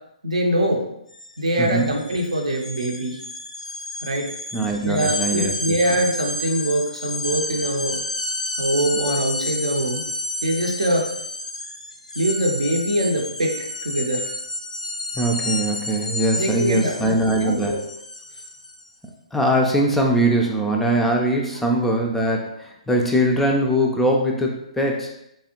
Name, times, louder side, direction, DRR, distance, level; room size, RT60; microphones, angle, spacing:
voice 1, 0.2-0.8 1.4-3.2 4.0-4.3 4.8-8.0 8.6-10.0 10.4-11.1 12.1-14.3 16.3-17.8, right 1 dB, 75° right, 1 dB, 0.6 m, -23 dB
sound 1, 1.1-1.3 1.6-18.8, left 2 dB, 85° left, 0.5 m, -30 dB
voice 2, 1.6-1.9 4.5-5.8 15.2-17.7 19.3-25.1, right 1 dB, 5° left, 0 dB, 0.3 m, -21 dB
3.2 x 2.3 x 2.9 m, 0.80 s
figure-of-eight pair, 125°, 4 cm